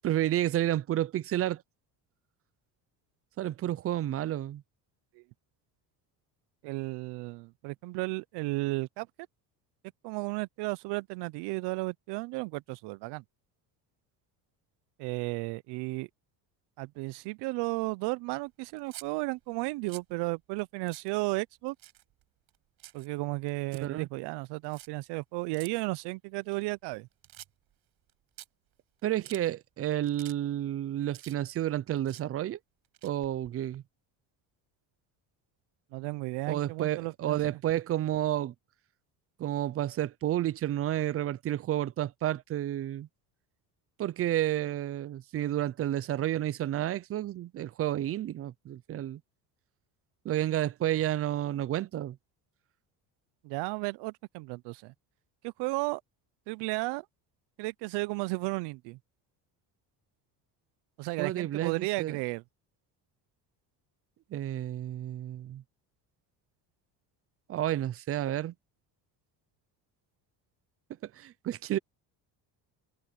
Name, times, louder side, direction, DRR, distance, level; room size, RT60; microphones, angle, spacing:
voice 1, 0.0-1.6 3.4-4.6 23.8-24.1 29.0-32.6 33.0-33.8 36.5-38.5 39.4-43.1 44.0-49.2 50.2-52.2 61.2-62.2 64.3-65.6 67.5-68.5 71.2-71.8, right 13 dB, 35° right, 0.5 m, -31 dB
voice 2, 6.6-9.1 10.0-13.2 15.0-16.1 16.8-21.7 22.9-27.1 35.9-37.4 53.4-54.9 55.4-56.0 56.5-57.0 57.6-59.0 61.0-62.4, right 24 dB, 80° right, 0.6 m, -34 dB
sound 1, 18.7-19.1 19.6-20.1 20.6-20.7 20.9-21.1 21.7-22.2 22.5-23.1 23.5-23.9 24.6-24.9 25.5-25.7 26.4-27.0 27.2-27.7 28.1-28.2 28.4-28.5 29.0-29.4 29.9-30.3 30.6-31.7 32.0-32.2 32.8-33.8, right 15 dB, 65° right, 5.9 m, -49 dB
cardioid pair, 140°, 40 cm